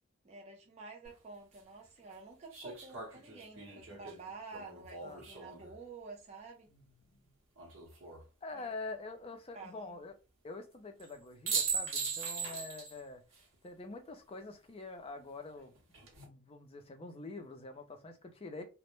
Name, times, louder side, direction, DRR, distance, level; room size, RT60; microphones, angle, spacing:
voice 1, 0.2-6.7 8.5-8.7 9.5-9.9, right 3 dB, 30° right, 0.5 m, -50 dB
sound 1, 1.0-1.1 2.5-5.7 7.6-8.2 11.0-11.1 11.5-13.0 13.3-13.4 15.7-16.2, right 5 dB, 65° right, 0.8 m, -39 dB
voice 2, 5.0-5.3 7.1-7.2 8.4-10.1 10.4-13.2 13.6-15.7 16.2-18.6, left 3 dB, 25° left, 0.4 m, -45 dB
2.1 x 2.0 x 3.0 m
head